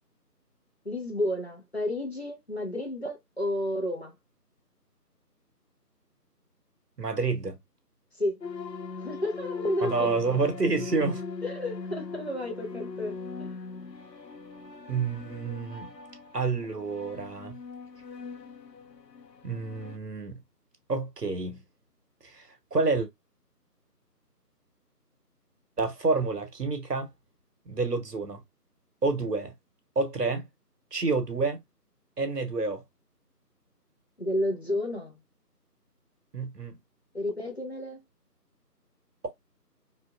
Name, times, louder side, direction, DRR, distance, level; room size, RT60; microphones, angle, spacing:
voice 1, 0.8-4.1 8.2-8.4 9.0-10.2 11.4-13.5 34.2-35.2 37.1-38.0, left 1 dB, 40° left, 0.7 m, -31 dB
voice 2, 7.0-7.6 9.8-11.2 14.9-15.9 16.3-17.6 19.4-20.4 20.9-21.6 22.2-23.1 25.8-27.1 27.7-28.4 29.0-29.5 30.0-30.5 30.9-31.6 32.2-32.8 36.3-36.8, right 4 dB, 70° right, 0.9 m, -28 dB
sound 1, 8.4-20.0, left 4 dB, 90° left, 0.7 m, -40 dB
2.9 x 2.6 x 2.3 m
figure-of-eight pair, 165°, 49 cm